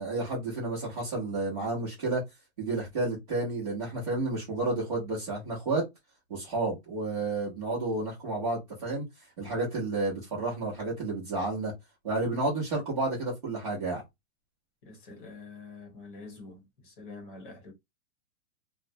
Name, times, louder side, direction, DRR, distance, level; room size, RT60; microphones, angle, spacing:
voice 1, 0.0-2.2 2.6-5.8 6.3-9.0 9.4-11.7 12.0-14.0, right 2 dB, 25° right, 0.7 m, -31 dB
voice 2, 14.8-17.7, left 3 dB, 35° left, 0.9 m, -46 dB
2.4 x 2.1 x 2.6 m
hypercardioid pair, 175°, 44 cm